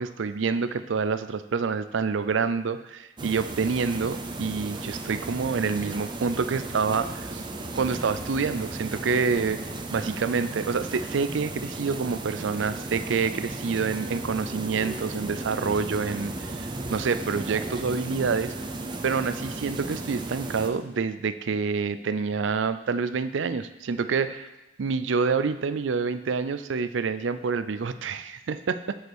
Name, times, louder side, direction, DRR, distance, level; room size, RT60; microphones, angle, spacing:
voice 1, 0.0-7.5 7.7-9.6 9.9-18.5 19.0-24.5 24.8-29.0, right 5 dB, 80° right, 12 dB, 0.5 m, -27 dB
sound 1, 3.2-20.7, right 2 dB, 25° right, 0.6 m, -35 dB
7.9 x 4.9 x 6.1 m, 1.1 s
head